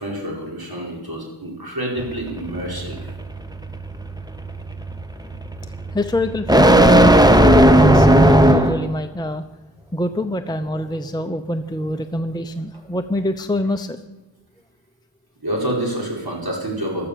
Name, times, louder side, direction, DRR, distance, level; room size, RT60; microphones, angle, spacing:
voice 1, 0.0-3.2 7.3-7.4 15.4-17.1, right 1 dB, 45° right, -1 dB, 5.0 m, -28 dB
sound 1, 2.0-8.9, right 1 dB, 10° right, 1.1 m, -15 dB
voice 2, 5.9-9.4 9.9-14.0, left 1 dB, 10° left, 7 dB, 0.7 m, -25 dB
14.5 x 12.5 x 6.9 m, 0.98 s
wide cardioid pair, 50°, 50 cm